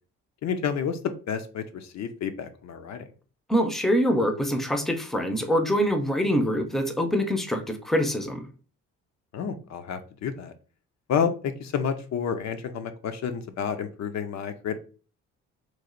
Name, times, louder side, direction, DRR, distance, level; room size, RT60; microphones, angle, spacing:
voice 1, 0.4-3.1 9.3-10.5 11.1-14.8, left 7 dB, 60° left, 9 dB, 0.6 m, -30 dB
voice 2, 3.5-8.5, equal, ahead, 6 dB, 0.6 m, -24 dB
3.1 x 2.5 x 3.8 m, 0.37 s
cardioid pair, 90°, 30 cm